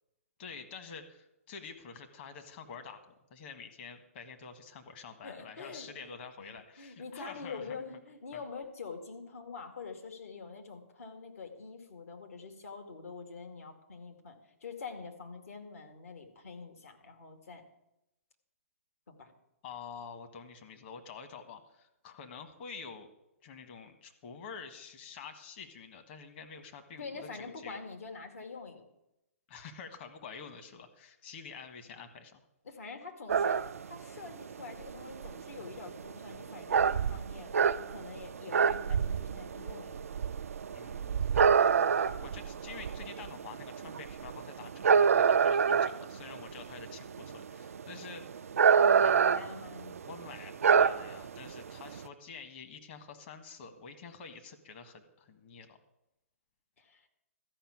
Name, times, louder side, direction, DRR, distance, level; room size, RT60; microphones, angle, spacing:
voice 1, 0.4-7.8 8.3-8.4 19.6-23.1 23.4-27.8 29.5-32.4 40.7-48.4 48.9-49.4 50.0-55.8, left 5 dB, 45° left, 7 dB, 1.6 m, -48 dB
voice 2, 5.2-6.5 6.8-17.6 19.1-19.3 27.0-28.9 32.6-40.1 48.8-50.0 56.8-57.1, left 4 dB, 70° left, 4 dB, 2.3 m, -45 dB
sound 1, 33.3-52.1, right 6 dB, 70° right, 0.5 m, -28 dB
13.5 x 5.8 x 8.8 m, 0.88 s
figure-of-eight pair, 130°, 8 cm